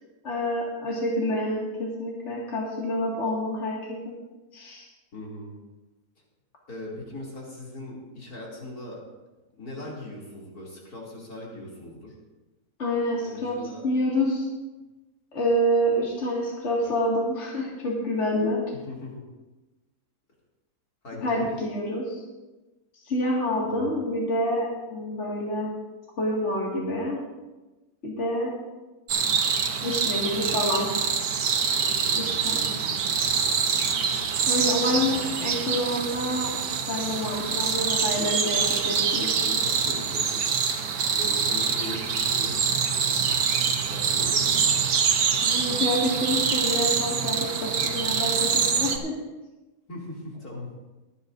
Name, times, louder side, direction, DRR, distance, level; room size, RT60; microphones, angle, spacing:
voice 1, 0.2-4.1 4.5-4.8 12.8-13.6 13.8-14.5 15.3-18.6 21.2-22.2 23.1-25.7 26.2-27.2 28.0-28.5 29.8-30.9 32.4-32.8 34.0-36.5 36.9-39.6 45.4-49.1, left 1 dB, 50° left, -4 dB, 2.5 m, -27 dB
voice 2, 5.1-5.5 6.7-9.0 9.6-12.1 13.2-13.9 18.9-19.2 21.0-21.5 23.6-23.9 31.9-32.2 39.6-40.4 40.8-43.2 43.8-44.7 49.9-50.7, left 1 dB, 80° left, -4 dB, 3.4 m, -39 dB
sound 1, 29.1-49.0, right 6 dB, 85° right, 1.5 m, -25 dB
23.0 x 9.5 x 2.7 m, 1.1 s
omnidirectional pair, 1.6 m